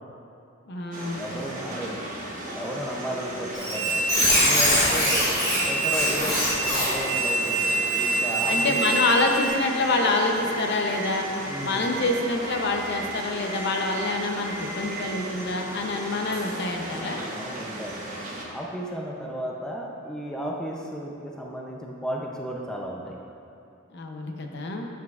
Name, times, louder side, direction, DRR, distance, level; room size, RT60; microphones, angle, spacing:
voice 1, 0.7-1.2 8.5-11.3 11.6-17.2 23.9-24.9, left 2 dB, 55° left, 2 dB, 0.7 m, -26 dB
sound 1, 0.9-18.4, right 1 dB, 40° right, 1.0 m, -36 dB
voice 2, 1.2-2.1 2.6-4.0 4.4-5.4 5.6-8.8 11.4-12.0 16.9-18.1 18.5-23.2, equal, 5° left, -2 dB, 0.5 m, -34 dB
Squeak, 3.5-9.5, right 1 dB, 20° left, 1.8 m, -23 dB
Alarm, 6.5-7.0 7.5-8.0 8.4-9.0 9.5-10.0 10.5-11.0 11.5-12.0 12.5-13.0 13.5-14.0 14.5-15.0, equal, 75° right, 0.8 m, -39 dB
9.4 x 7.2 x 2.4 m, 2.6 s
head